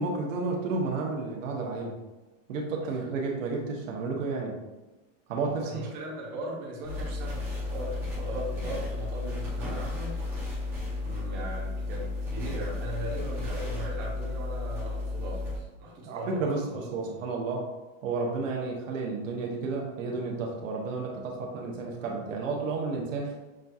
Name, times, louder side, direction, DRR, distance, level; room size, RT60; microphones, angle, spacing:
voice 1, 0.0-1.9 2.5-4.6 5.3-5.8 16.0-17.7 18.0-23.3, right 3 dB, 90° right, 0 dB, 1.1 m, -31 dB
voice 2, 5.6-10.2 11.0-16.8, right 1 dB, 25° right, -5 dB, 0.9 m, -38 dB
sound 1, 6.8-15.6, left 2 dB, 5° right, 0.6 m, -33 dB
6.2 x 2.7 x 2.4 m, 1.1 s
supercardioid pair, 170°, 38 cm